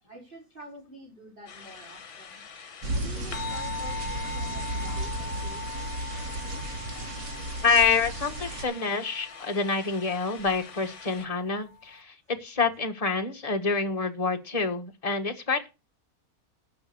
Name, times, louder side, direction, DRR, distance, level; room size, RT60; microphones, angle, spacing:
voice 1, 0.1-2.4 2.9-5.9 6.9-7.1, equal, 35° right, -5 dB, 5.2 m, -47 dB
sound 1, 1.5-11.3, left 6 dB, 55° left, 1.5 m, -46 dB
sound 2, 2.8-8.6, right 2 dB, 55° right, 1.9 m, -34 dB
sound 3, 3.3-12.0, left 4 dB, 75° left, 1.3 m, -41 dB
voice 2, 7.6-15.7, left 4 dB, 25° left, 4 dB, 1.5 m, -27 dB
12.5 x 6.1 x 7.0 m, 0.30 s
omnidirectional pair, 1.6 m